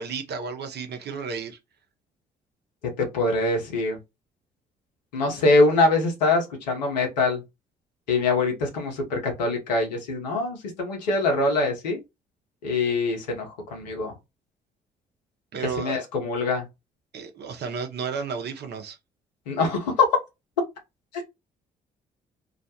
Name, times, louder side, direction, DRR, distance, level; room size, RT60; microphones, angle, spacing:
voice 1, 0.0-1.6 15.5-16.0 17.1-19.0, right 5 dB, 50° right, 0.7 m, -32 dB
voice 2, 3.0-4.0 5.1-7.4 8.1-12.0 12.6-14.1 15.6-16.7 19.5-20.1 21.1-21.2, left 3 dB, 85° left, 0.7 m, -24 dB
2.4 x 2.1 x 2.8 m
hypercardioid pair, 45°, 21 cm